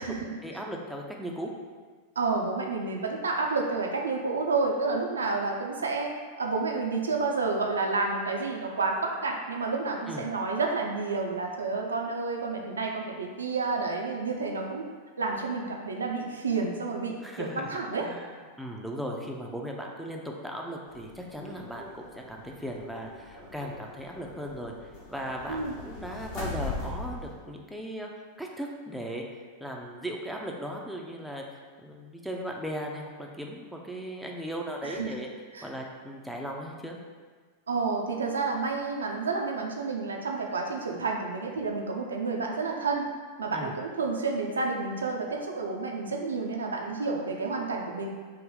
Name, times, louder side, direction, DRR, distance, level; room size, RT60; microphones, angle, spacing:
voice 1, 0.4-1.5 10.1-10.3 17.2-17.7 18.0-28.1 28.4-29.2 29.6-31.4 31.8-35.3 35.6-37.0 43.5-43.7, equal, ahead, -1 dB, 0.4 m, -37 dB
voice 2, 2.2-14.9 15.2-18.1 25.5-25.7 34.8-35.2 35.5-35.7 37.7-43.1 43.4-48.1, right 3 dB, 70° right, 1 dB, 0.4 m, -30 dB
sound 1, 20.9-27.3, left 3 dB, 45° left, 0.8 m, -40 dB
3.3 x 2.0 x 3.8 m, 1.5 s
figure-of-eight pair, 90°, 0 cm